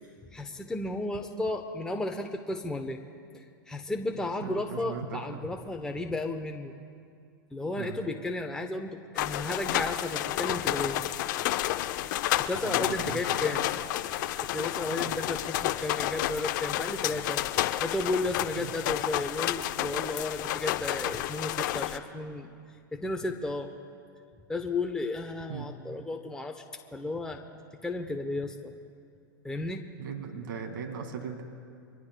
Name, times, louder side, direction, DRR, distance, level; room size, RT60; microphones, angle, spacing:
voice 1, 0.3-3.0 3.3-6.7 7.5-11.0 12.4-13.7 14.4-17.4 17.8-22.5 22.9-23.7 24.5-26.6 26.9-27.4 27.8-28.7 29.4-29.8, left 2 dB, 5° left, 3 dB, 0.9 m, -33 dB
voice 2, 4.4-5.4 7.8-8.0 12.6-13.2 13.5-13.7 18.6-18.7 25.5-25.7 30.0-31.4, right 6 dB, 75° right, 4 dB, 2.1 m, -38 dB
sound 1, 9.2-22.0, left 14 dB, 60° left, 0.7 m, -30 dB
24.5 x 21.0 x 2.3 m, 2.3 s
hypercardioid pair, 110°, 11 cm